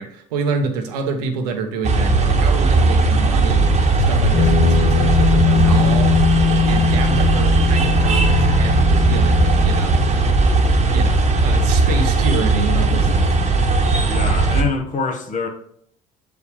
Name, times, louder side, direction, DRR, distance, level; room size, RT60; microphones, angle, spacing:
voice 1, 0.0-3.7 3.9-6.2 6.6-10.0 10.9-13.3, right 4 dB, 80° right, 0.9 m, -27 dB
sound 1, 1.8-14.6, right 3 dB, 35° right, 1.2 m, -17 dB
sound 2, 3.5-10.9, left 6 dB, 55° left, 1.1 m, -20 dB
voice 2, 14.1-15.5, left 4 dB, 40° left, 1.2 m, -25 dB
6.5 x 5.1 x 3.2 m
hypercardioid pair, 65°, 20 cm